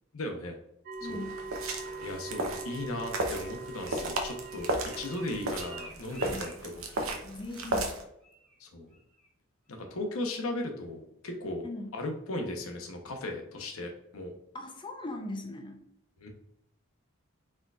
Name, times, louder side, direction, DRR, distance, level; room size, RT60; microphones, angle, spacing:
voice 1, 0.1-0.6 1.0-1.2 2.0-7.2 8.6-8.9 9.7-11.6 11.9-14.3 16.2-16.3, left 1 dB, 85° left, 3 dB, 0.9 m, -37 dB
sound 1, 0.9-5.9, right 3 dB, 45° right, 0.4 m, -42 dB
sound 2, 0.9-8.0, right 2 dB, 80° right, 0.8 m, -35 dB
voice 2, 1.0-1.4 6.2-6.4 7.2-7.9 11.6-11.9 14.5-15.8, left 1 dB, 25° left, 3 dB, 0.6 m, -39 dB
Bird, 3.6-7.3 7.6-7.9 8.2-8.6 8.9-9.3 9.7-9.8, right 4 dB, 5° left, 1.1 m, -51 dB
4.5 x 3.7 x 2.4 m, 0.76 s
head